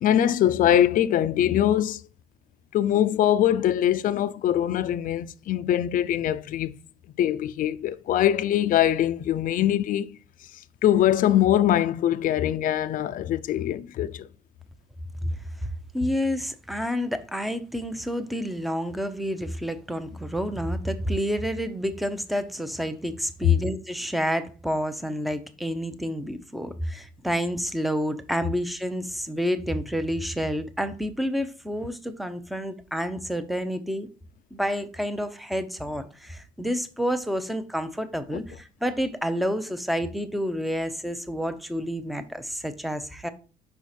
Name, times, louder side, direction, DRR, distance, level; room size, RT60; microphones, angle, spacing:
voice 1, 0.0-2.0 2.7-6.7 7.2-10.1 10.8-14.3 23.4-23.6 38.3-38.4, left 11 dB, 55° left, 0.4 m, -22 dB
voice 2, 15.9-34.1 34.5-43.3, equal, ahead, 0.7 m, -29 dB
5.7 x 4.6 x 4.2 m
cardioid pair, 110°, 17 cm